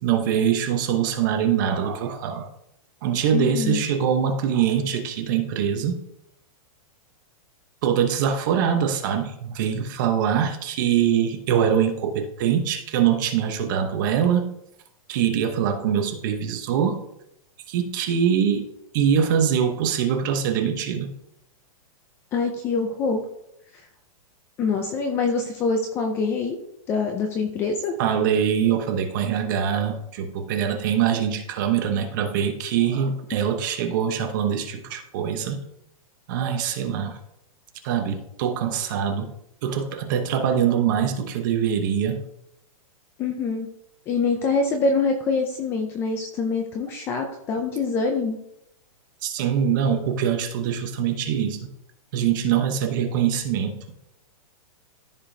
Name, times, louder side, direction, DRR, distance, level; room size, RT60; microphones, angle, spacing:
voice 1, 0.0-2.5 3.0-6.0 7.8-14.5 15.1-17.0 17.7-18.7 18.9-21.1 28.0-35.6 36.3-37.2 37.8-39.3 39.6-42.2 49.2-51.7 52.1-53.8, right 8 dB, 35° right, 6 dB, 1.0 m, -23 dB
voice 2, 3.3-3.8 22.3-23.2 24.6-26.6 26.9-27.9 43.2-43.7 44.1-48.4, left 4 dB, 15° left, 4 dB, 0.4 m, -25 dB
14.0 x 5.0 x 2.7 m, 0.78 s
hypercardioid pair, 175°, 19 cm